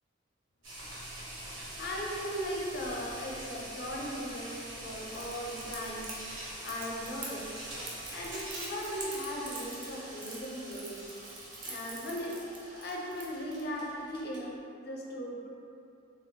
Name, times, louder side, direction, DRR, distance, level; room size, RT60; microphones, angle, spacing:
sound 1, 0.6-14.5, right 1 dB, 80° right, 0.8 m, -44 dB
voice 1, 1.4-6.1 6.6-7.5 8.1-11.1 11.6-15.5, equal, 55° left, -2 dB, 0.5 m, -38 dB
Crackle, 5.1-13.6, right 3 dB, 45° right, 0.5 m, -45 dB
3.3 x 2.1 x 2.7 m, 2.5 s
head